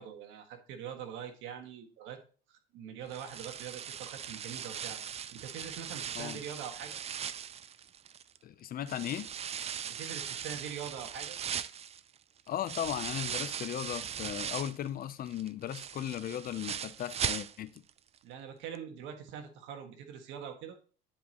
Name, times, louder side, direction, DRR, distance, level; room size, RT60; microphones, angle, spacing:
voice 1, 0.0-2.2 2.5-5.0 5.3-7.0 9.8-11.4 18.2-20.8, right 8 dB, 80° right, 1.6 m, -43 dB
sound 1, 3.1-8.4 8.9-14.9 15.3-17.9 18.2-18.3 18.7-18.8, right 8 dB, 35° right, 0.4 m, -39 dB
voice 2, 8.4-9.3 12.5-17.8, left 11 dB, 50° left, 0.6 m, -37 dB
10.5 x 5.0 x 2.9 m
cardioid pair, 100°, 19 cm